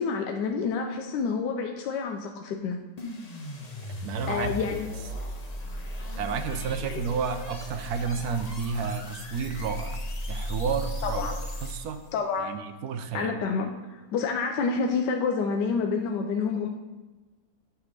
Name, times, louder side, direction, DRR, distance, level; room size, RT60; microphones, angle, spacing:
voice 1, 0.0-2.8 4.3-4.9 6.8-7.0 11.0-11.4 12.1-12.5 13.1-16.7, left 5 dB, 85° left, 3 dB, 1.3 m, -28 dB
sound 1, 3.0-12.1, left 1 dB, 35° left, 0.7 m, -36 dB
voice 2, 3.8-4.8 6.2-10.0 10.3-11.2 11.6-12.0 12.4-13.4, right 6 dB, 70° right, 8 dB, 1.1 m, -31 dB
9.0 x 3.5 x 6.5 m, 1.2 s
omnidirectional pair, 1.8 m